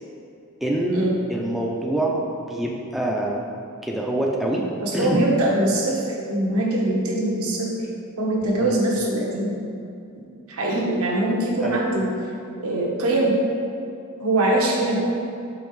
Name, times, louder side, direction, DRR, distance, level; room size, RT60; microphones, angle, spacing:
voice 1, 0.6-3.4 3.8-4.7 4.9-5.2 8.6-8.8 11.6-11.8, right 1 dB, ahead, -3 dB, 0.4 m, -25 dB
voice 2, 4.8-7.7 8.2-9.5 10.5-12.1 12.6-13.4 14.2-15.0, right 1 dB, 70° right, -3 dB, 1.0 m, -22 dB
5.6 x 5.3 x 3.1 m, 2.6 s
head